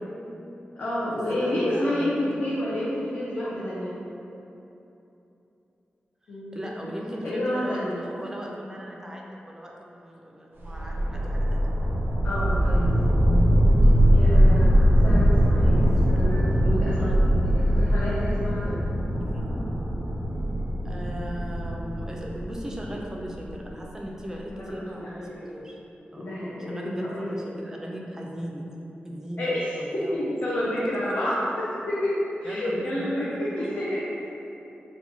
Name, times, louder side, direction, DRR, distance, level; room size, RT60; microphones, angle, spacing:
voice 1, 0.4-4.0 6.3-6.9 7.2-8.0 12.2-13.1 14.1-18.8 24.6-25.5 26.2-27.3 29.4-32.1 32.4-34.0, left 1 dB, 60° left, -8 dB, 0.5 m, -30 dB
voice 2, 1.1-2.1 6.5-11.7 13.8-14.1 15.8-16.1 17.0-17.1 19.3-19.5 20.8-25.8 26.1-26.3 26.7-28.7 29.0-30.1 30.6-31.2 32.4-33.8, equal, 15° right, -2 dB, 0.4 m, -38 dB
sound 1, 10.6-23.7, equal, 80° right, 0.5 m, -21 dB
3.0 x 2.1 x 4.0 m, 2.9 s
wide cardioid pair, 130°, 4 cm